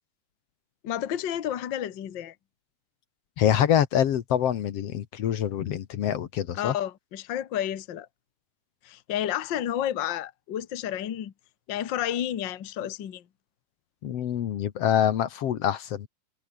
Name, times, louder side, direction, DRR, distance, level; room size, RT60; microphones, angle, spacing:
voice 1, 0.8-2.3 6.5-8.1 8.8-11.3 11.7-13.2, left 11 dB, 80° left, 1.0 m, -31 dB
voice 2, 3.4-6.7 14.0-16.1, left 10 dB, 60° left, 1.8 m, -25 dB
omnidirectional pair, 4.3 m